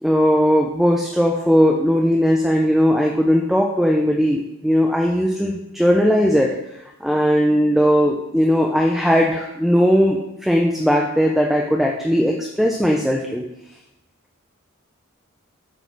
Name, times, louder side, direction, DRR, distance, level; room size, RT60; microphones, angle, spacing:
voice 1, 0.0-6.6 7.0-13.4, equal, ahead, 0 dB, 0.3 m, -18 dB
7.9 x 3.1 x 4.1 m, 0.91 s
head